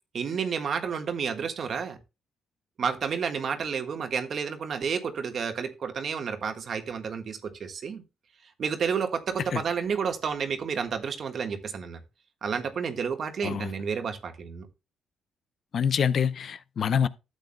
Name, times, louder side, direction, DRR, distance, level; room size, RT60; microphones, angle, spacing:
voice 1, 0.1-2.0 2.8-8.0 8.6-12.0 12.4-14.7, right 6 dB, 55° right, 1.4 m, -30 dB
voice 2, 15.7-17.1, left 7 dB, 55° left, 0.6 m, -25 dB
13.0 x 8.0 x 2.2 m
cardioid pair, 90°, 0 cm